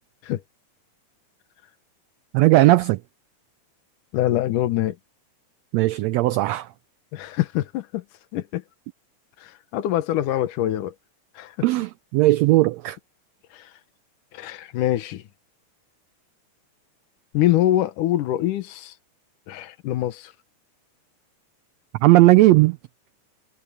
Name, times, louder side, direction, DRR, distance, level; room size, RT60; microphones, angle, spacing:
voice 1, 2.3-3.0 5.7-6.7 11.6-13.0 22.0-22.8, right 18 dB, 90° right, 1.5 m, -17 dB
voice 2, 4.1-5.0 7.1-8.0 8.3-8.6 9.4-10.9 11.4-11.6 13.5-13.7 14.3-15.2 17.3-18.9 19.5-20.3, left 13 dB, 85° left, 2.6 m, -24 dB
omnidirectional pair, 3.6 m